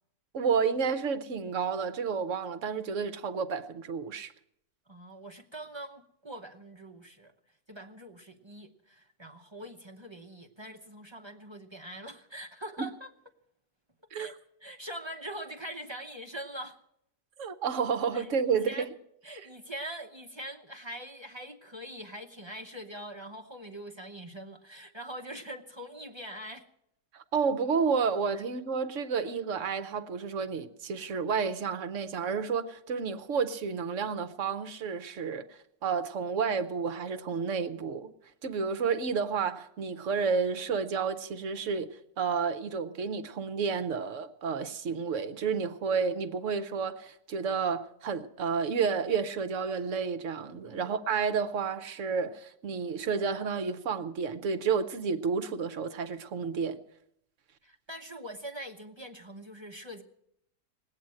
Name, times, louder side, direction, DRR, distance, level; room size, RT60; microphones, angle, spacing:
voice 1, 0.3-4.3 14.1-14.3 17.4-18.9 27.1-38.1 38.4-56.8, right 5 dB, 60° right, 1.0 m, -31 dB
voice 2, 4.9-7.3 7.7-13.1 14.1-14.3 14.6-16.8 18.1-18.9 19.2-26.7 28.3-28.4 50.6-50.9 57.6-60.0, right 1 dB, 25° right, 0.6 m, -43 dB
19.0 x 8.8 x 7.6 m
omnidirectional pair, 1.6 m